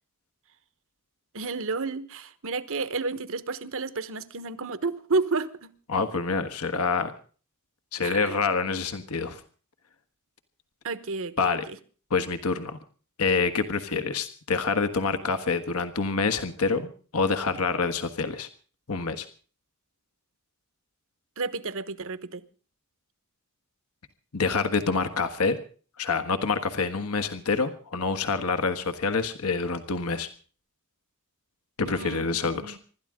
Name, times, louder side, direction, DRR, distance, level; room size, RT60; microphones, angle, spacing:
voice 1, 1.3-5.7 8.0-8.4 10.8-11.5 21.4-22.4 31.8-32.2 32.5-32.8, right 3 dB, 65° right, 1.2 m, -31 dB
voice 2, 5.9-7.1 7.9-9.4 11.4-11.6 12.1-12.8 13.2-18.5 18.9-19.3 24.3-25.6 26.0-30.3 31.8-32.8, left 4 dB, 75° left, 1.4 m, -27 dB
25.5 x 12.5 x 3.7 m
head